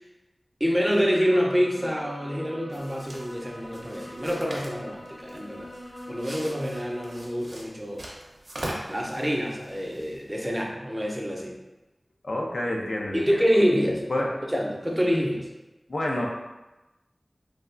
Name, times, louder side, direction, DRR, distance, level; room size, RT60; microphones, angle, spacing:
voice 1, 0.6-5.7 6.1-8.1 8.9-11.6 13.1-15.5, equal, 15° right, 0 dB, 0.4 m, -26 dB
sound 1, 1.0-7.2, left 1 dB, 35° left, 0.7 m, -44 dB
sound 2, 2.7-10.7, right 1 dB, 75° right, 0.6 m, -42 dB
voice 2, 12.2-13.4 14.1-14.3 15.9-16.2, left 1 dB, 80° left, -1 dB, 0.4 m, -28 dB
3.2 x 2.2 x 2.4 m, 1.0 s
wide cardioid pair, 50°, 0 cm